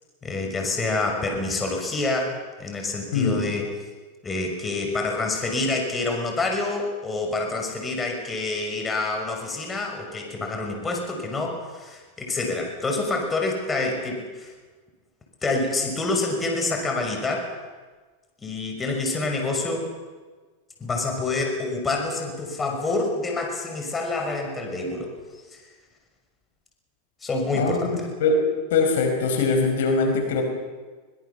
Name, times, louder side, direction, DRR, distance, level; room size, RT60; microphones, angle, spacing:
voice 1, 0.2-3.7 4.2-14.5 15.4-17.6 18.4-19.9 20.8-25.1 27.2-28.1, left 2 dB, 15° left, 2 dB, 6.2 m, -27 dB
voice 2, 3.1-3.4 27.5-28.4 28.7-30.4, left 3 dB, 75° left, 5 dB, 5.2 m, -22 dB
23.5 x 21.0 x 7.2 m, 1.3 s
hypercardioid pair, 120°, 0 cm